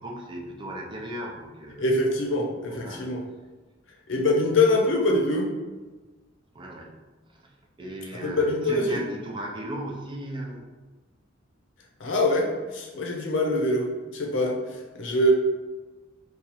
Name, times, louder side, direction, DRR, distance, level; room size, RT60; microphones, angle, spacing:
voice 1, 0.0-2.0 2.7-3.1 6.5-6.9 7.8-10.7, right 1 dB, 25° right, 0 dB, 0.5 m, -36 dB
voice 2, 1.8-3.2 4.1-5.5 8.2-9.0 12.0-15.3, left 1 dB, 70° left, 0 dB, 0.6 m, -24 dB
2.9 x 2.4 x 4.0 m, 1.2 s
head